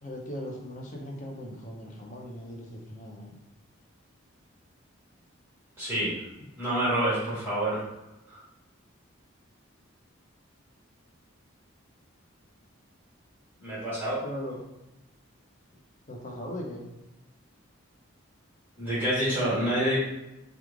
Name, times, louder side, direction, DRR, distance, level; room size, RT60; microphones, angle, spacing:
voice 1, 0.0-3.3 14.2-14.6 16.1-16.8, equal, 35° left, 0 dB, 0.6 m, -39 dB
voice 2, 5.8-6.1 6.6-7.8 8.3-8.4 13.6-14.2 18.8-20.0, right 1 dB, 10° right, -11 dB, 1.4 m, -27 dB
3.1 x 2.4 x 3.5 m, 0.95 s
head